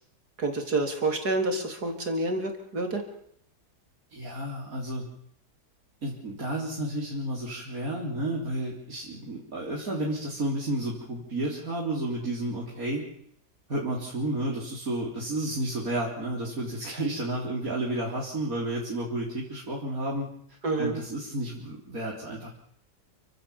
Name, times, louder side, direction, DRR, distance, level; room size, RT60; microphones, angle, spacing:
voice 1, 0.4-3.0 20.6-21.0, right 2 dB, 75° right, 4 dB, 4.1 m, -28 dB
voice 2, 4.1-5.1 6.0-13.0 13.7-20.3 20.8-22.5, right 1 dB, 60° right, -3 dB, 4.3 m, -31 dB
29.0 x 16.5 x 7.3 m, 0.71 s
omnidirectional pair, 1.7 m